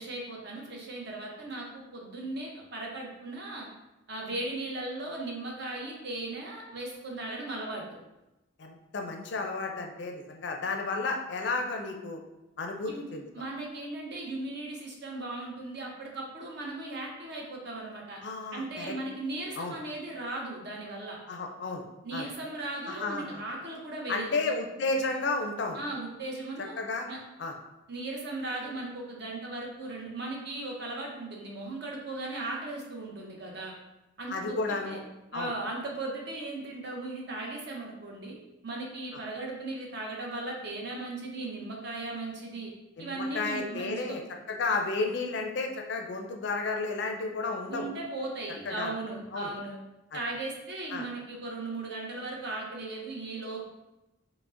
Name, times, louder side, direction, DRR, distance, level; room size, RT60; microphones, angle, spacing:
voice 1, 0.0-3.7 4.1-8.0 12.9-13.1 13.3-18.2 18.5-21.2 22.0-24.4 25.7-26.7 27.1-27.2 27.9-33.7 34.2-35.0 35.3-38.4 38.6-42.7 43.0-44.2 47.7-49.8 50.1-53.7, right 2 dB, 55° right, -1 dB, 0.7 m, -37 dB
voice 2, 8.6-12.2 12.6-13.2 18.2-18.9 19.6-19.7 21.3-21.9 22.1-22.3 22.9-23.4 24.1-25.8 26.8-27.1 27.4-27.5 34.3-35.0 35.3-35.5 43.0-44.2 44.5-47.9 48.7-48.9 49.3-49.5 50.9-51.1, left 3 dB, 55° left, 3 dB, 0.4 m, -32 dB
4.8 x 2.1 x 2.5 m, 0.98 s
head